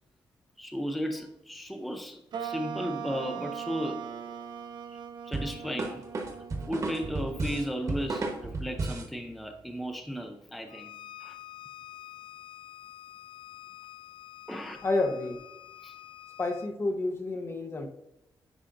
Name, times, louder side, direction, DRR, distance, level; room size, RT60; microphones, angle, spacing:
voice 1, 0.6-4.1 5.2-6.0 6.7-10.9 11.2-11.4 14.5-14.8 15.8-15.9, equal, ahead, 5 dB, 0.5 m, -35 dB
sound 1, 2.3-9.0, right 8 dB, 60° right, 0.5 m, -41 dB
sound 2, 5.3-9.1, right 2 dB, 40° right, 1.1 m, -33 dB
Bowed string instrument, 10.7-16.7, left 13 dB, 85° left, 0.4 m, -48 dB
voice 2, 14.8-15.4 16.4-17.9, left 2 dB, 30° left, 5 dB, 0.8 m, -29 dB
10.0 x 5.0 x 2.5 m, 0.89 s
wide cardioid pair, 175°, 8 cm